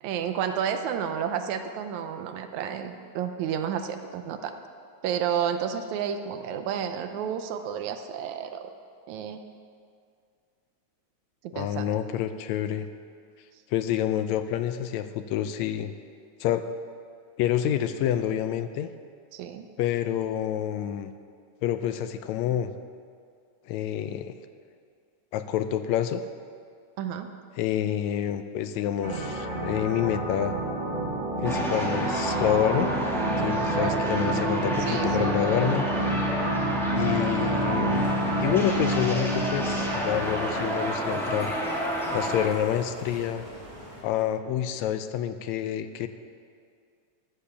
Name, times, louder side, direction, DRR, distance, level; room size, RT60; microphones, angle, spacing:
voice 1, 0.0-4.6 5.0-8.7 9.1-9.4 11.4-11.9 19.3-19.7 27.0-27.3 33.4-34.0 34.8-35.5, right 8 dB, 80° right, 7 dB, 2.1 m, -31 dB
voice 2, 11.5-12.9 13.7-15.9 16.4-16.6 17.4-18.9 19.8-21.1 21.6-22.7 23.7-24.3 25.3-26.2 27.6-30.6 31.4-32.9 33.4-35.8 36.9-38.1 38.4-41.5 42.1-43.5 44.0-46.1, left 10 dB, 80° left, 10 dB, 1.8 m, -28 dB
sound 1, 29.0-40.8, right 1 dB, 50° right, 0.5 m, -30 dB
sound 2, 31.4-42.5, right 1 dB, ahead, 1.1 m, -29 dB
Bicycle, 37.9-44.0, equal, 15° right, 1.8 m, -44 dB
13.5 x 7.4 x 6.8 m, 2.2 s
omnidirectional pair, 3.3 m